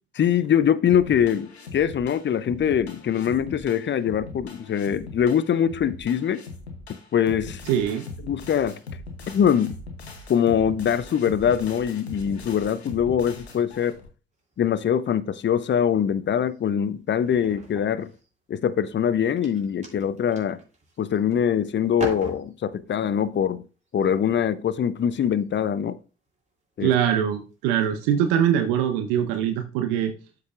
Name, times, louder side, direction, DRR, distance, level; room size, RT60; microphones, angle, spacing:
voice 1, 0.2-6.4 7.1-7.6 8.2-8.8 9.3-9.7 10.3-14.0 14.6-18.1 18.5-20.6 21.0-23.6 23.9-26.0 26.8-26.9, left 8 dB, 35° left, 0.6 m, -23 dB
sound 1, 0.9-14.1, left 3 dB, 90° left, 0.9 m, -40 dB
voice 2, 7.7-8.1 26.8-30.1, right 9 dB, 70° right, 0.7 m, -23 dB
sound 2, 14.3-15.1 15.5-15.8 16.2-18.6 19.1-21.5 21.8-22.9 23.9-24.1 25.3-25.5 26.3-26.5 27.1-27.2 27.5-28.5, right 3 dB, 20° right, 3.0 m, -41 dB
12.5 x 4.8 x 2.4 m
figure-of-eight pair, 45°, 31 cm